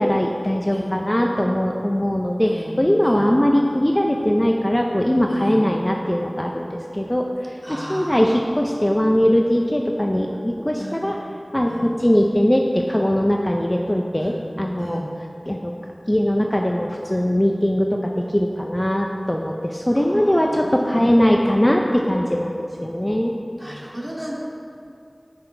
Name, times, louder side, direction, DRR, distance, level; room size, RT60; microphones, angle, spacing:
voice 1, 0.0-7.3 7.7-11.2 11.5-15.0 15.5-15.7 16.1-23.3, equal, 20° left, 1 dB, 0.7 m, -20 dB
voice 2, 0.7-1.0 2.4-3.3 5.3-5.7 7.6-8.3 10.8-11.0 11.7-11.9 14.2-14.4 14.8-15.1 20.0-21.6 23.6-24.3, equal, 20° right, -4 dB, 2.4 m, -35 dB
15.0 x 6.0 x 4.5 m, 2.5 s
wide cardioid pair, 45°, 0 cm